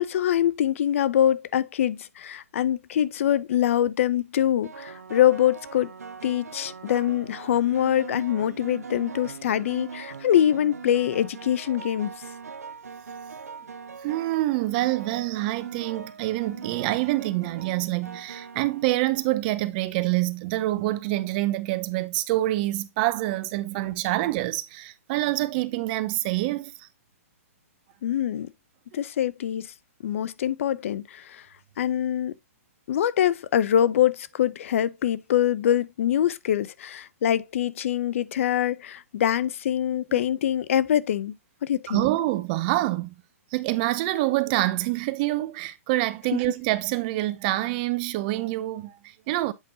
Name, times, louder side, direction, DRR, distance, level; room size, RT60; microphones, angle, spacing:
voice 1, 0.0-5.9 6.2-12.1 28.0-28.5 28.9-29.7 30.0-31.5 31.8-32.3 32.9-41.3 41.6-42.0 46.3-46.4, left 10 dB, 60° left, 0.6 m, -24 dB
sound 1, 3.0-3.4 4.6-19.5, right 5 dB, 85° right, 0.7 m, -41 dB
voice 2, 14.0-26.9 40.1-40.2 41.9-43.1 43.5-49.5, right 17 dB, 40° right, 0.7 m, -26 dB
8.1 x 5.2 x 2.7 m
hypercardioid pair, 130°, 8 cm